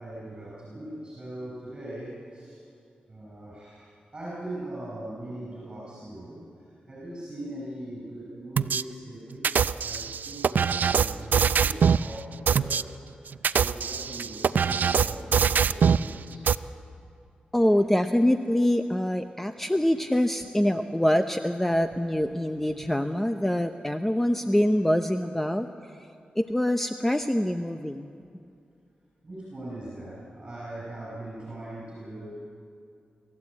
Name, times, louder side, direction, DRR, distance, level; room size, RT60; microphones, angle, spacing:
voice 1, 0.0-2.6 3.1-6.5 6.9-12.9 13.2-16.5 29.2-32.4, right 1 dB, 25° right, -5 dB, 6.7 m, -40 dB
sound 1, 8.6-8.8 9.4-12.1 12.5-12.8 13.3-16.1 16.5-16.6, right 7 dB, 70° right, 0.5 m, -23 dB
voice 2, 17.5-25.7 26.4-28.1, left 1 dB, 10° left, 8 dB, 0.7 m, -25 dB
27.0 x 14.0 x 8.5 m, 2.4 s
cardioid pair, 85°, 3 cm